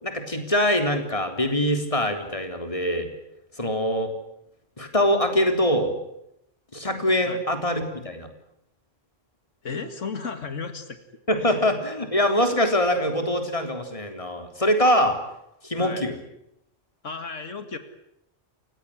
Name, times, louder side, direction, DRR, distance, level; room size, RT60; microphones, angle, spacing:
voice 1, 0.0-3.1 3.6-4.1 4.8-5.9 6.7-8.3 11.3-15.2 15.6-16.2, equal, 25° left, 6 dB, 3.7 m, -23 dB
voice 2, 9.6-11.0 11.4-11.5 15.8-16.0 17.0-17.8, left 5 dB, 90° left, 9 dB, 2.4 m, -34 dB
29.0 x 17.0 x 10.0 m, 0.79 s
omnidirectional pair, 1.2 m